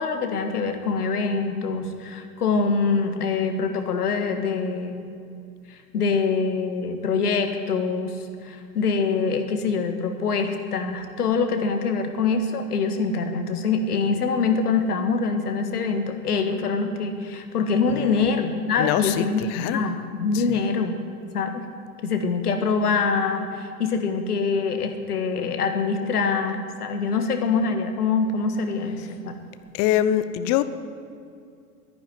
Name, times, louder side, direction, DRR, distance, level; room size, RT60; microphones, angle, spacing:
voice 1, 0.0-5.0 5.7-21.0 21.3-21.7 22.0-29.4, left 4 dB, 75° left, 6 dB, 1.7 m, -24 dB
voice 2, 17.9-18.3 18.7-19.9 20.3-20.6 28.9-29.1 29.7-30.6, left 12 dB, 35° left, 13 dB, 0.8 m, -25 dB
10.5 x 10.5 x 9.4 m, 2.3 s
figure-of-eight pair, 95°, 46 cm